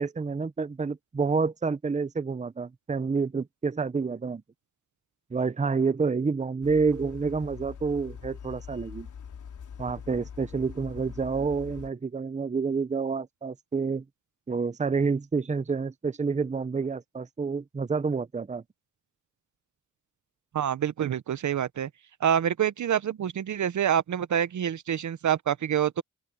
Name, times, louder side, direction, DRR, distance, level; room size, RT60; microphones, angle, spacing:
voice 1, 0.0-4.4 5.3-9.1 9.8-14.0 14.5-18.6, right 4 dB, 25° right, 0.8 m, -28 dB
sound 1, 6.6-11.9, left 7 dB, 70° left, 5.5 m, -43 dB
voice 2, 20.5-21.9 22.2-26.0, right 9 dB, 65° right, 0.9 m, -26 dB
open air
cardioid pair, 70°, 31 cm